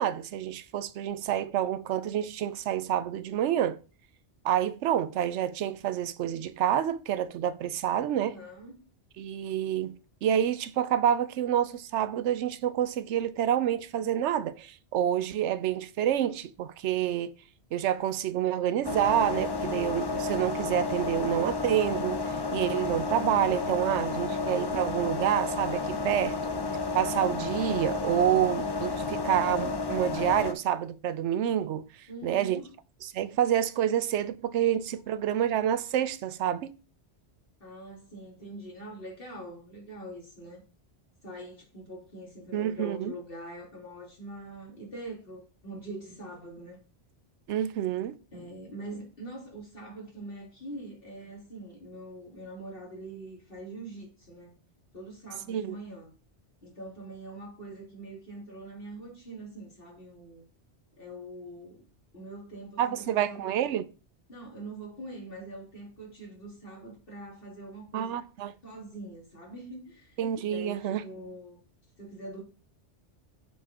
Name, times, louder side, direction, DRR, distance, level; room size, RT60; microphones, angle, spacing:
voice 1, 0.0-3.8 4.4-8.4 9.2-17.3 17.7-26.4 26.9-31.9 32.2-32.6 33.0-36.7 42.5-43.1 47.5-48.2 55.5-55.8 62.8-63.8 67.9-68.5 70.2-71.0, right 10 dB, 90° right, 0.9 m, -28 dB
voice 2, 8.1-8.8 32.1-32.7 37.6-40.6 41.2-46.8 48.3-54.6 54.9-56.1 56.6-60.4 61.0-61.8 62.1-63.5 64.3-68.1 68.6-71.6 72.0-72.4, right 1 dB, 55° left, 3.1 m, -43 dB
sound 1, 18.8-30.5, left 4 dB, 30° left, 0.5 m, -31 dB
7.0 x 4.8 x 4.3 m
omnidirectional pair, 1.2 m